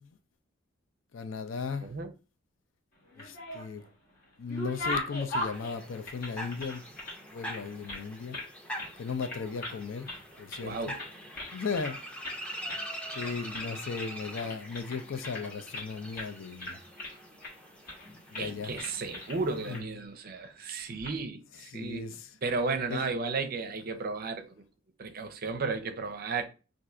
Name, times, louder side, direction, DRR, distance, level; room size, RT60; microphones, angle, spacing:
voice 1, 1.1-1.9 3.2-3.8 4.4-6.8 7.3-8.4 9.0-10.1 10.4-10.8 11.5-12.0 13.1-16.8 18.3-18.7 19.7-19.8 21.7-22.3 22.9-23.0, left 5 dB, 80° left, 0.5 m, -36 dB
voice 2, 1.8-2.1 10.6-11.0 13.2-13.4 18.4-22.1 22.4-24.5 25.0-26.5, right 4 dB, 50° right, 0.5 m, -34 dB
sound 1, 3.0-3.9 4.2-7.2 7.4-8.5 8.8-9.0 9.2-9.8 10.1-10.7 11.0-12.0 12.2-12.4 12.7-12.8 13.1-13.7 14.0-15.9 16.1-16.3 16.6-17.5 17.9-18.1 18.3-18.5 18.8-19.4 19.7-19.8 20.8-21.1, left 1 dB, 50° left, 1.2 m, -38 dB
sound 2, 5.5-19.8, equal, 5° left, 0.7 m, -44 dB
2.6 x 2.4 x 4.1 m
head